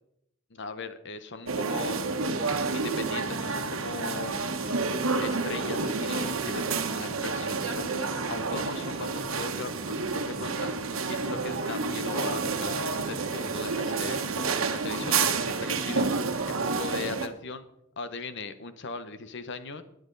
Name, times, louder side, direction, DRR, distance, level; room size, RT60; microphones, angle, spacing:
voice 1, 0.5-2.0 2.7-4.4 5.2-8.0 8.3-10.7 11.1-14.3 14.7-16.1 16.5-17.6 18.0-19.8, left 4 dB, 60° left, 11 dB, 1.0 m, -38 dB
sound 1, 1.5-17.3, right 4 dB, 85° right, 1.3 m, -29 dB
21.0 x 7.9 x 4.0 m, 0.80 s
head